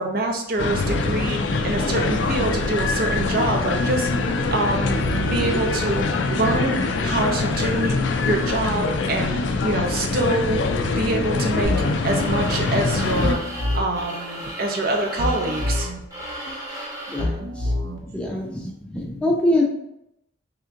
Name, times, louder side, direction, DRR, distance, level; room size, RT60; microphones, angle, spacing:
voice 1, 0.0-4.1 4.5-10.6 11.0-11.7 12.0-13.4 13.7-15.9 16.5-16.6 17.6-17.9 18.4-18.6, right 2 dB, 50° right, 2 dB, 0.7 m, -25 dB
sound 1, 0.6-13.4, left 3 dB, 75° left, 0.4 m, -23 dB
sound 2, 11.6-17.4, right 1 dB, 20° right, 1.1 m, -35 dB
sound 3, 11.6-12.0 13.2-14.0 15.2-16.0 17.2-18.0, left 1 dB, 80° right, 0.8 m, -26 dB
voice 2, 17.1-17.7 18.0-19.6, left 1 dB, 5° left, -1 dB, 0.4 m, -24 dB
3.4 x 2.9 x 3.6 m, 0.81 s
head